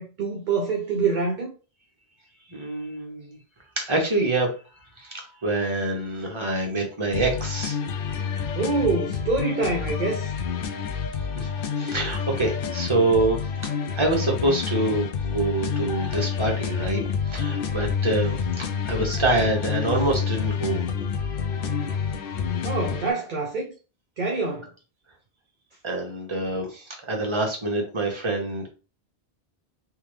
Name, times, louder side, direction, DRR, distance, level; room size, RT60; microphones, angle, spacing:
voice 1, 0.0-1.5 8.5-10.3 22.6-23.7 24.2-24.7, right 4 dB, 55° right, 0.7 m, -26 dB
voice 2, 2.5-3.4 3.8-4.5 5.0-7.8 11.3-11.5 11.8-13.4 14.0-17.0 17.3-18.3 18.9-20.8 25.8-28.7, right 2 dB, 30° right, 1.2 m, -25 dB
sound 1, 7.1-23.1, left 6 dB, 65° left, 0.7 m, -28 dB
3.5 x 3.1 x 3.2 m
omnidirectional pair, 1.1 m